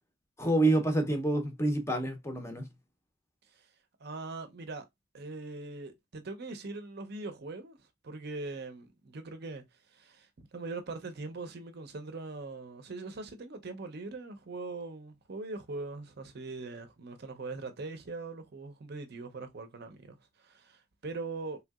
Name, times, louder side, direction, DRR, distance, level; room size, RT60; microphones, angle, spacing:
voice 1, 0.4-2.7, right 2 dB, 15° left, 0.5 m, -28 dB
voice 2, 4.0-4.9 5.1-9.6 9.9-21.6, right 3 dB, 50° right, 0.6 m, -41 dB
3.3 x 2.7 x 2.3 m
head